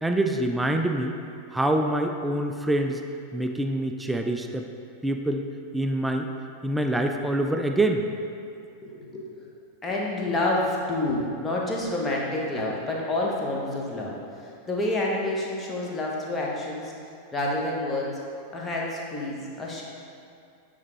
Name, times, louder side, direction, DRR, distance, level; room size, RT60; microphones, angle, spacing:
voice 1, 0.0-1.1 1.5-3.0 3.3-4.7 5.0-5.4 5.7-6.3 6.6-8.0, right 1 dB, 5° right, 4 dB, 0.4 m, -25 dB
voice 2, 8.8-9.3 9.8-16.9 17.3-18.2 18.5-19.8, left 2 dB, 15° left, -3 dB, 1.1 m, -28 dB
8.7 x 3.5 x 3.2 m, 2.5 s
figure-of-eight pair, 90°, 0 cm